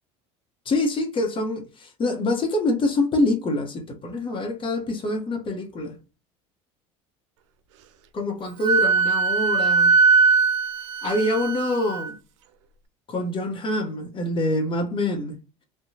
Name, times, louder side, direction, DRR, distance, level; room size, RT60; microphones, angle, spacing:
voice 1, 0.7-5.9 8.1-9.9 11.0-12.2 13.1-15.4, left 2 dB, 35° left, 0.9 m, -25 dB
Wind instrument woodwind instrument, 8.6-12.1, right 5 dB, 85° right, 0.4 m, -20 dB
2.8 x 2.2 x 2.6 m
supercardioid pair, 85°, 15 cm